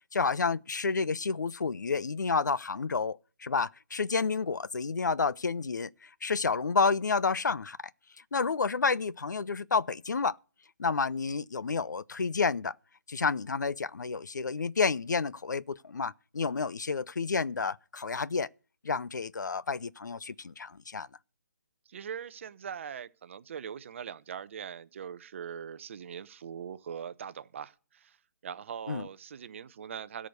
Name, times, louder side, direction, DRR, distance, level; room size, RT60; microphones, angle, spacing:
voice 1, 0.1-5.9 6.2-7.8 8.3-10.4 10.8-12.7 13.1-18.5 18.8-21.1 28.9-29.1, left 4 dB, 85° left, 0.5 m, -30 dB
voice 2, 21.9-28.2 28.4-30.3, right 8 dB, 45° right, 0.7 m, -41 dB
13.0 x 5.1 x 8.0 m
figure-of-eight pair, 155°, 10 cm